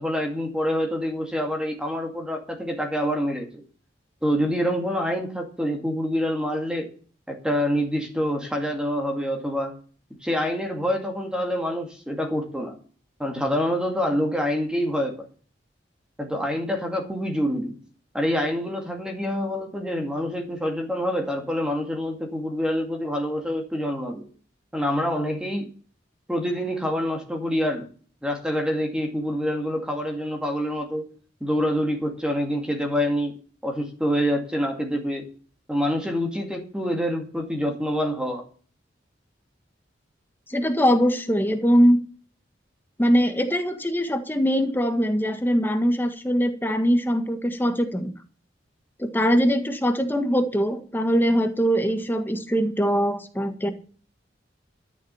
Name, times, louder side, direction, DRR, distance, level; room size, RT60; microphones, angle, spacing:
voice 1, 0.0-3.5 4.2-6.9 7.3-9.7 10.2-12.8 13.2-15.3 16.2-17.8 18.1-24.2 24.7-25.7 26.3-27.9 28.2-31.0 31.4-33.3 33.6-35.2 35.7-38.4, equal, 5° right, 2 dB, 2.3 m, -26 dB
voice 2, 40.5-42.0 43.0-48.1 49.0-53.7, equal, 10° left, 6 dB, 1.6 m, -22 dB
13.0 x 7.2 x 7.1 m, 0.42 s
head